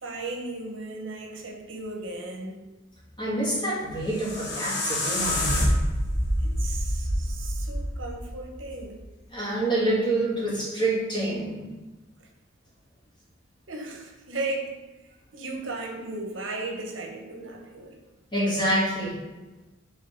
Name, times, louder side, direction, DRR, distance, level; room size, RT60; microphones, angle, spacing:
voice 1, 0.0-2.6 6.6-9.0 13.7-14.7 15.3-18.0, right 2 dB, 75° right, 2 dB, 0.9 m, -35 dB
voice 2, 3.2-5.7 9.3-11.6 18.3-19.2, right 1 dB, 25° left, -7 dB, 2.0 m, -27 dB
sound 1, 3.9-9.0, equal, 60° left, 1.1 m, -27 dB
5.4 x 3.4 x 5.1 m, 1.1 s
head